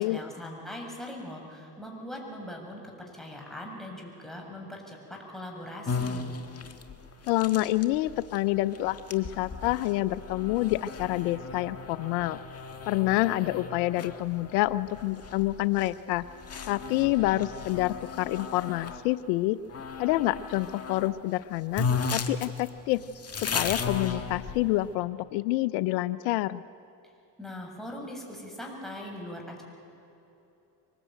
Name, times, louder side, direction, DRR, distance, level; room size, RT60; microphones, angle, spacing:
voice 1, 0.0-6.4 27.4-29.6, left 1 dB, ahead, -1 dB, 7.1 m, -41 dB
sound 1, 5.9-19.0 19.7-21.1 21.4-21.5 21.7-24.9, left 5 dB, 30° left, 1.8 m, -36 dB
voice 2, 7.3-12.4 12.8-16.2 16.6-19.6 20.0-23.0 23.4-26.6, left 17 dB, 85° left, 16 dB, 0.7 m, -27 dB
24.0 x 20.5 x 9.1 m, 2.9 s
supercardioid pair, 80°, 47 cm